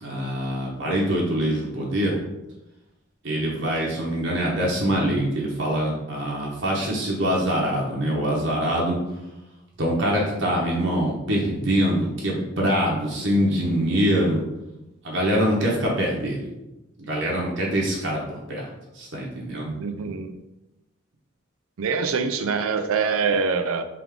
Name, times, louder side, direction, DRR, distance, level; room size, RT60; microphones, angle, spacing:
voice 1, 0.0-2.2 3.2-9.0 9.8-14.4 15.0-16.5 17.1-18.7 18.9-19.9, equal, 60° right, -3 dB, 0.9 m, -24 dB
voice 2, 19.8-20.3 21.8-23.8, right 5 dB, 90° right, 9 dB, 0.4 m, -24 dB
3.5 x 3.5 x 3.6 m, 0.96 s
head